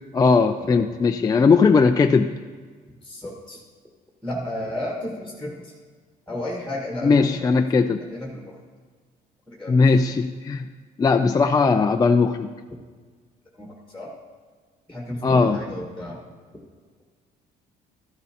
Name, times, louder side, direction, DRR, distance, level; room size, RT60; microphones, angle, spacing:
voice 1, 0.1-2.4 7.0-8.0 9.7-10.7 11.0-12.5 15.2-15.6, left 4 dB, 20° left, 6 dB, 0.3 m, -18 dB
voice 2, 3.0-3.6 4.2-5.7 6.3-7.5 8.1-8.6 9.5-10.0 13.5-14.1 14.9-16.2, left 1 dB, 5° left, -1 dB, 1.4 m, -33 dB
13.0 x 11.0 x 2.9 m, 1.5 s
cardioid pair, 110°, 17 cm